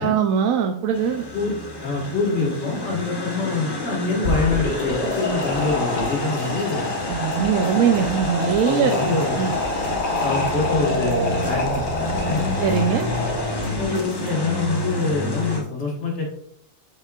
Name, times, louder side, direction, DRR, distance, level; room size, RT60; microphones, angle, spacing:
voice 1, 0.0-1.2 7.1-9.5 12.6-13.1, right 7 dB, 85° right, 5 dB, 1.0 m, -21 dB
sound 1, 0.9-15.6, left 2 dB, 20° left, 0.7 m, -29 dB
voice 2, 1.3-6.9 7.7-7.8 8.6-9.4 10.2-12.5 13.8-16.2, left 3 dB, 55° left, -2 dB, 2.0 m, -25 dB
sound 2, 4.1-13.8, left 2 dB, 80° left, 1.7 m, -27 dB
sound 3, 4.5-14.6, left 1 dB, 40° left, 1.9 m, -38 dB
8.2 x 5.5 x 2.4 m, 0.70 s
omnidirectional pair, 1.4 m